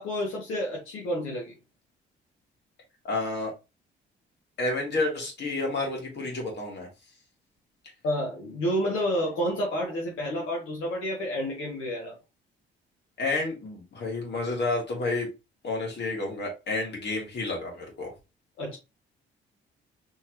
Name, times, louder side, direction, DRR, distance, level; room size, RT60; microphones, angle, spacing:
voice 1, 0.0-1.5 8.0-12.2 18.6-18.8, equal, 85° left, 1.5 m, -29 dB
voice 2, 3.0-3.5 4.6-6.9 13.2-15.3 15.6-18.1, left 2 dB, 60° left, 2.7 m, -30 dB
4.4 x 3.4 x 3.0 m
cardioid pair, 90°, 20 cm